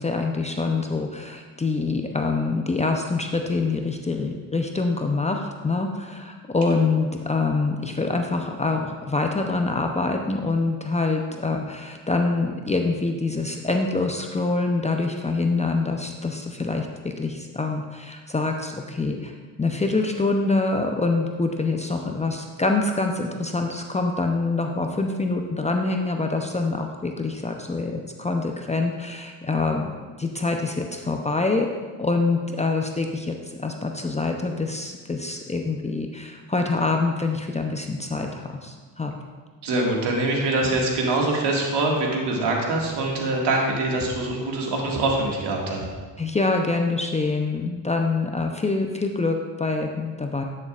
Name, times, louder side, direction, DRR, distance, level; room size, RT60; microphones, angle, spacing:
voice 1, 0.0-29.9 30.2-31.7 32.0-39.1 46.2-50.4, left 3 dB, 15° left, 3 dB, 0.6 m, -25 dB
voice 2, 39.6-45.9, right 2 dB, 65° right, -1 dB, 2.0 m, -24 dB
10.5 x 6.7 x 2.5 m, 1.4 s
supercardioid pair, 75°, 44 cm